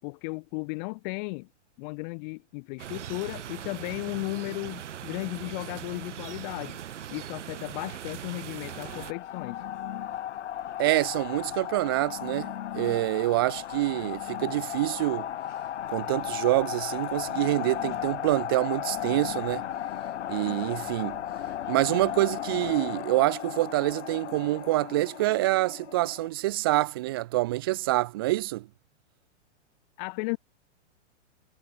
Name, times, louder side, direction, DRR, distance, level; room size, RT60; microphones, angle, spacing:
voice 1, 0.0-1.5 1.8-6.8 7.1-9.6 30.0-30.4, left 31 dB, 40° left, 5.6 m, -35 dB
sound 1, 2.8-9.1, right 10 dB, 75° right, 7.5 m, -40 dB
sound 2, 8.6-26.3, left 11 dB, 70° left, 2.4 m, -35 dB
voice 2, 10.8-15.3 15.9-19.6 20.3-21.2 21.7-28.7, right 18 dB, 20° right, 0.4 m, -26 dB
hypercardioid pair, 150°, 36 cm